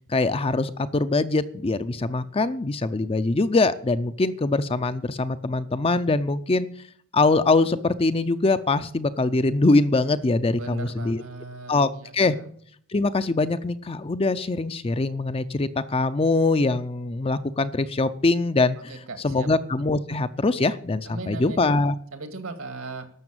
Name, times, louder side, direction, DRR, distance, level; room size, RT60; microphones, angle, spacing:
voice 1, 0.1-6.7 7.1-11.2 11.7-12.4 12.9-22.0, left 3 dB, 25° left, 12 dB, 0.5 m, -23 dB
voice 2, 10.6-12.4 18.9-19.5 21.1-21.6 22.1-23.1, right 3 dB, 75° right, 7 dB, 2.1 m, -38 dB
12.0 x 7.0 x 9.0 m, 0.62 s
head